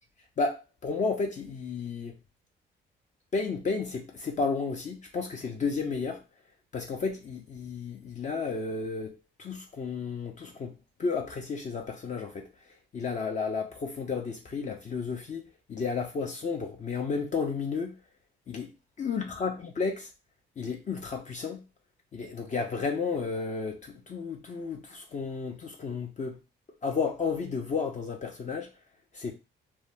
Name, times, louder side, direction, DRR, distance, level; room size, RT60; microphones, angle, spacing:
voice 1, 0.4-2.1 3.3-6.2 6.7-9.1 9.4-10.7 11.0-12.5 12.9-15.4 15.7-18.0 18.5-18.7 19.0-20.1 20.6-21.6 22.1-26.4 26.8-28.7 29.1-29.3, left 4 dB, 35° left, 0.5 m, -32 dB
2.7 x 2.0 x 3.3 m
cardioid pair, 90°, 20 cm